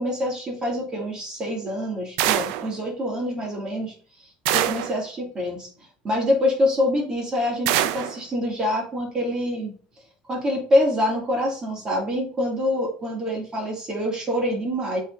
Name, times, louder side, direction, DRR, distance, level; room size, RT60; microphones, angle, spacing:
voice 1, 0.0-5.7 6.0-9.7 10.3-15.0, left 1 dB, 25° right, -1 dB, 2.7 m, -25 dB
sound 1, 2.2-2.7 4.5-5.0 7.7-8.2, right 12 dB, 80° right, 0.6 m, -23 dB
7.7 x 3.8 x 3.8 m, 0.41 s
cardioid pair, 120°, 3 cm